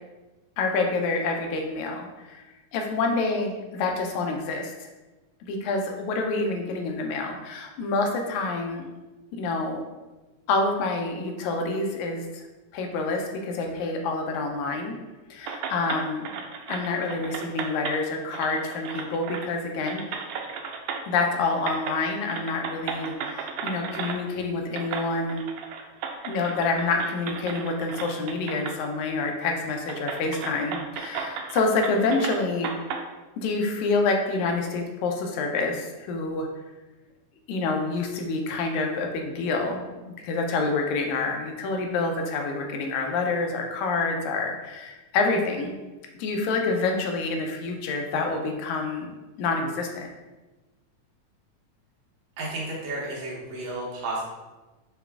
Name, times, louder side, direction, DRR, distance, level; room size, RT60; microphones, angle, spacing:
voice 1, 0.6-2.4 2.7-4.9 5.5-8.9 9.3-9.8 10.5-12.4 12.7-15.0 15.3-16.3 16.7-20.2 21.1-25.4 26.3-32.7 33.4-36.5 37.5-45.7 46.2-49.1 49.4-50.1, left 3 dB, 80° left, 3 dB, 2.0 m, -27 dB
sound 1, 15.5-18.0 18.3-19.6 19.9-21.3 21.6-22.0 22.3-24.2 24.8-28.8 29.2-29.3 29.9-33.0, right 6 dB, 90° right, 1.4 m, -35 dB
voice 2, 52.4-54.2, right 2 dB, 75° right, -4 dB, 2.4 m, -32 dB
6.8 x 2.3 x 3.4 m, 1.1 s
omnidirectional pair, 3.4 m